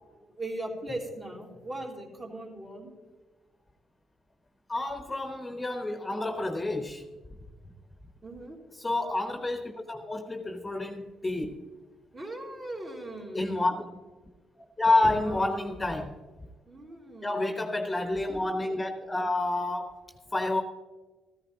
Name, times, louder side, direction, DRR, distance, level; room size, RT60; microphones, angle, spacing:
voice 1, 0.2-2.9 8.2-8.6 12.1-13.6 15.2-15.8 16.6-17.7, right 1 dB, 35° right, -1 dB, 3.3 m, -39 dB
voice 2, 4.7-7.0 8.8-11.6 13.3-13.9 14.8-16.1 17.2-20.0 20.3-20.6, left 2 dB, 15° left, 4 dB, 1.0 m, -29 dB
14.5 x 14.0 x 2.8 m, 1.4 s
cardioid pair, 90°, 0 cm